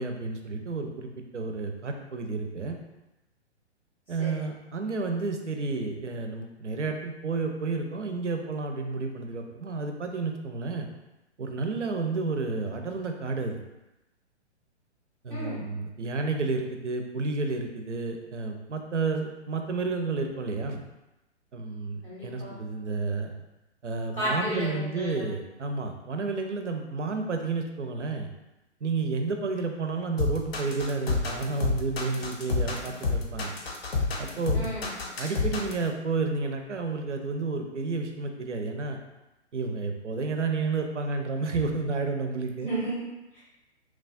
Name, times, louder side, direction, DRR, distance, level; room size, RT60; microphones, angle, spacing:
voice 1, 0.0-2.8 4.1-10.9 11.4-13.6 15.2-20.8 21.5-23.3 23.8-28.3 28.8-33.5 34.2-34.8 35.2-39.0 39.5-42.7, right 3 dB, 85° right, 4 dB, 0.5 m, -31 dB
voice 2, 15.3-15.6 22.0-22.5 24.1-25.3 34.5-34.9 42.6-43.4, right 1 dB, 5° left, -10 dB, 0.4 m, -33 dB
sound 1, 30.2-35.8, left 3 dB, 60° left, 0.6 m, -28 dB
3.1 x 2.3 x 2.5 m, 0.97 s
figure-of-eight pair, 125°, 35 cm